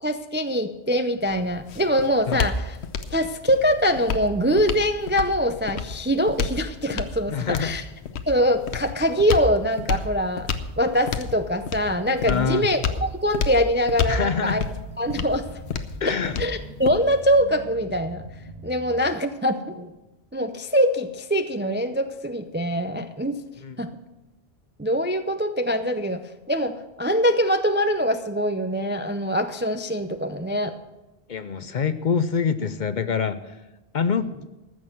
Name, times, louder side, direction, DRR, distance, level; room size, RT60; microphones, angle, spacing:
voice 1, 0.0-2.8 3.1-7.8 8.3-10.5 10.8-14.7 15.0-15.5 16.0-18.2 18.6-19.9 20.3-23.4 23.8-23.9 24.8-26.2 26.5-30.7 34.2-34.3, equal, 15° right, 9 dB, 0.3 m, -23 dB
sound 1, 1.2-17.3, left 5 dB, 85° left, 1.1 m, -31 dB
voice 2, 7.3-7.7 12.2-12.6 14.1-14.6 16.0-16.4 23.6-23.8 31.3-33.4 33.9-34.3, left 6 dB, 55° left, 12 dB, 0.7 m, -25 dB
sound 2, 14.5-19.0, right 2 dB, 75° right, 2.5 m, -42 dB
14.5 x 6.3 x 7.6 m, 1.0 s
omnidirectional pair, 1.1 m